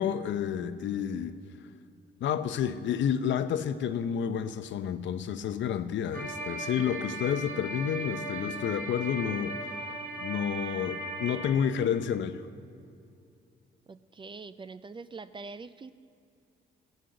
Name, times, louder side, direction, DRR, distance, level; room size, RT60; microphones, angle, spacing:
voice 1, 0.0-1.4 2.2-9.6 10.2-12.4, left 8 dB, 70° left, 11 dB, 0.6 m, -30 dB
sound 1, 6.1-11.5, right 2 dB, 45° right, 2.2 m, -37 dB
voice 2, 13.9-15.9, right 4 dB, 25° right, 13 dB, 0.4 m, -44 dB
14.5 x 6.5 x 7.8 m, 2.5 s
cardioid pair, 90°, 20 cm